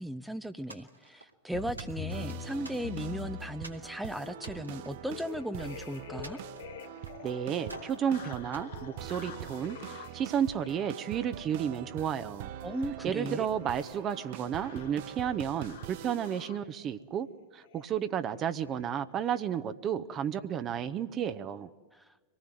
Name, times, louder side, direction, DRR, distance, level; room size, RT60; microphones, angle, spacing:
voice 1, 0.0-6.4 12.6-13.5 21.9-22.1, right 1 dB, 5° right, 10 dB, 0.7 m, -37 dB
sound 1, 0.7-1.3 1.8-3.2 3.6-3.9 4.3-5.7 6.2-7.2 7.6-8.0 8.5-9.6, right 2 dB, 85° right, 2.0 m, -50 dB
sound 2, 1.5-16.9 17.6-17.9 18.2-18.4 18.7-18.8 19.1-19.4, left 12 dB, 55° left, 0.7 m, -47 dB
sound 3, 1.5-16.5, right 13 dB, 50° right, 0.6 m, -44 dB
voice 2, 7.2-12.5 13.0-17.3 17.5-21.7, right 8 dB, 30° right, 11 dB, 0.9 m, -32 dB
25.0 x 19.0 x 7.7 m, 1.3 s
figure-of-eight pair, 90°, 0 cm